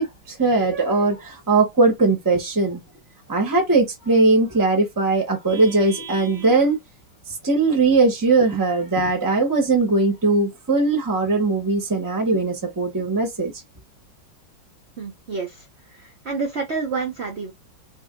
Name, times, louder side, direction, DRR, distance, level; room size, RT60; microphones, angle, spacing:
voice 1, 0.0-2.8 3.3-6.8 7.4-13.5, right 3 dB, 15° right, 0.7 m, -20 dB
voice 2, 15.0-15.7 15.9-17.5, right 4 dB, 60° right, 0.7 m, -29 dB
2.8 x 2.7 x 3.6 m
omnidirectional pair, 2.2 m